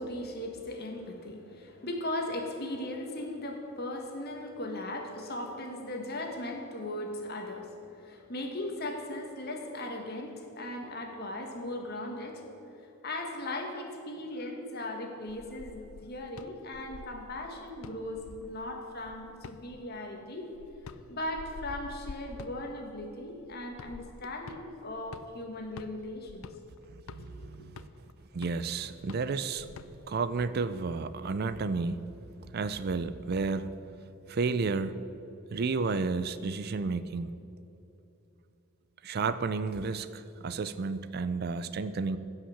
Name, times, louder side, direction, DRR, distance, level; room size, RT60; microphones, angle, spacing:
voice 1, 0.0-12.4 13.0-20.5 21.1-26.5 27.2-27.7, left 1 dB, 45° left, 2 dB, 1.6 m, -38 dB
sound 1, 15.3-30.3, left 4 dB, 70° left, 0.5 m, -49 dB
voice 2, 27.1-27.9 28.3-32.0 32.4-33.8 34.3-35.0 35.5-37.3 39.0-42.2, right 4 dB, 45° right, 13 dB, 0.4 m, -32 dB
15.5 x 5.7 x 7.2 m, 2.9 s
head